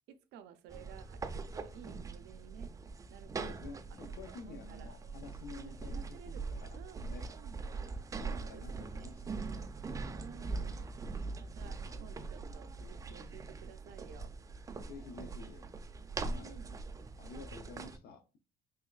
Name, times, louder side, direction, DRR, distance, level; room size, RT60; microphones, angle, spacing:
voice 1, 0.1-2.7 3.1-3.8 4.3-5.0 5.6-7.6 8.4-8.6 9.0-9.1 10.1-11.0 11.4-14.3 16.2-16.8, right 8 dB, 80° right, 0.4 m, -54 dB
sound 1, 0.7-18.0, right 4 dB, 20° right, 0.3 m, -42 dB
voice 2, 3.4-6.8 7.1-7.3 8.2-9.5 10.5-10.8 11.3-11.4 11.8-12.3 14.8-15.7 16.3-16.6 17.2-18.2, left 4 dB, 65° left, 0.6 m, -50 dB
3.4 x 3.0 x 2.3 m
cardioid pair, 110°, 17 cm